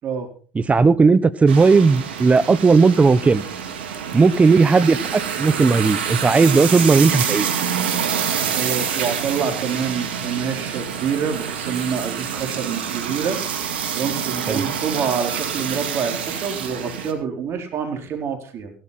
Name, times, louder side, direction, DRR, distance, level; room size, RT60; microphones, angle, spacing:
voice 1, 0.5-3.4 4.1-7.6 14.5-14.6, right 4 dB, 25° right, 16 dB, 1.1 m, -16 dB
sound 1, 1.5-17.1, right 8 dB, 85° right, 2.2 m, -27 dB
voice 2, 8.5-13.4 14.0-18.7, right 7 dB, 50° right, 4 dB, 4.2 m, -26 dB
16.0 x 12.5 x 4.2 m, 0.40 s
hypercardioid pair, 75°, 6 cm